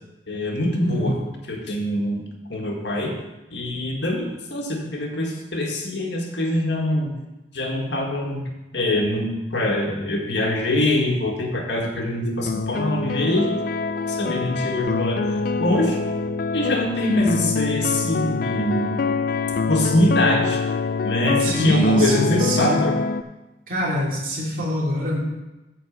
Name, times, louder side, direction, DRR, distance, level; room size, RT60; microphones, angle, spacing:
voice 1, 0.3-1.1 1.5-2.2 2.5-3.1 3.5-7.1 7.5-8.4 8.7-13.5 14.1-16.0 16.5-18.9 19.7-20.6 21.0-23.0, left 1 dB, 80° left, 1 dB, 1.8 m, -24 dB
voice 2, 0.8-1.2 17.0-17.3 21.4-22.8 23.7-25.2, equal, 50° right, -4 dB, 2.7 m, -23 dB
sound 1, 12.5-23.2, left 4 dB, 55° left, 0.4 m, -25 dB
8.9 x 4.5 x 7.3 m, 1.1 s
head